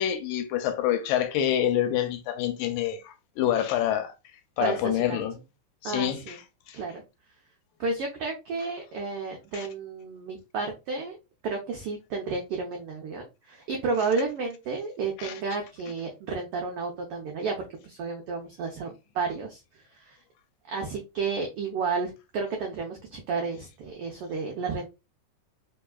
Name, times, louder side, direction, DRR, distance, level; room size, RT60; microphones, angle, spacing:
voice 1, 0.0-4.1 4.6-5.4 5.8-6.4 6.7-6.8 9.5-9.7 15.2-15.3, left 11 dB, 80° left, 1.8 m, -27 dB
voice 2, 4.6-5.2 5.8-6.4 6.7-7.0 7.8-11.2 11.4-17.6 17.8-19.6 19.9-20.2 20.7-24.9, right 4 dB, 85° right, 1.2 m, -32 dB
4.5 x 3.1 x 2.2 m
omnidirectional pair, 3.5 m